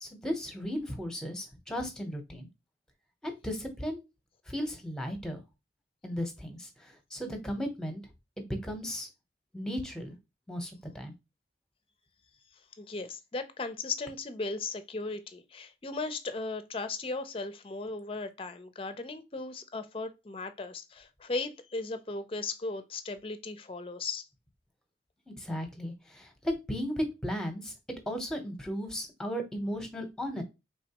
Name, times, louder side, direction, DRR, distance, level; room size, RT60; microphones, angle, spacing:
voice 1, 0.0-2.5 3.2-4.0 4.5-5.4 6.0-8.0 8.4-9.1 9.5-10.1 10.5-11.1 25.3-27.7 28.1-30.4, equal, 5° left, 0.8 m, -35 dB
voice 2, 12.8-24.3, left 3 dB, 30° left, 0.4 m, -37 dB
4.2 x 3.4 x 2.9 m
head